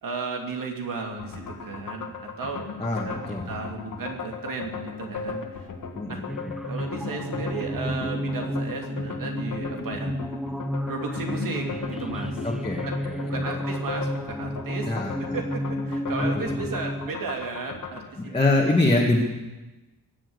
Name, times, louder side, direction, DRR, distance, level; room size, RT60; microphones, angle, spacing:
voice 1, 0.0-5.7 6.1-6.2 6.7-10.1 10.9-12.4 12.8-14.9 15.2-18.6, right 4 dB, 70° right, 2 dB, 2.9 m, -34 dB
sound 1, 1.2-18.1, left 4 dB, 60° left, 2.0 m, -37 dB
voice 2, 2.8-3.5 5.9-6.5 12.4-13.4 14.9-15.4 18.2-19.2, left 2 dB, 15° left, -2 dB, 1.9 m, -25 dB
sound 2, 6.3-17.1, equal, ahead, 0.4 m, -32 dB
22.5 x 7.6 x 8.1 m, 1.1 s
wide cardioid pair, 120°, 34 cm